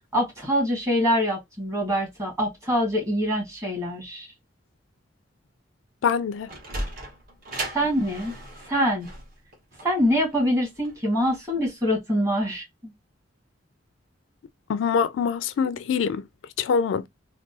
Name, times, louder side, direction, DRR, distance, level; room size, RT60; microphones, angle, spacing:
voice 1, 0.1-4.3 7.7-8.3 8.7-9.1 9.8-12.9, equal, 15° right, 1.6 m, -24 dB
voice 2, 6.0-6.5 14.7-16.2 16.6-17.1, left 6 dB, 75° left, 0.3 m, -24 dB
Sliding door, 6.3-11.4, right 1 dB, 45° right, 1.1 m, -36 dB
3.5 x 2.2 x 2.6 m
head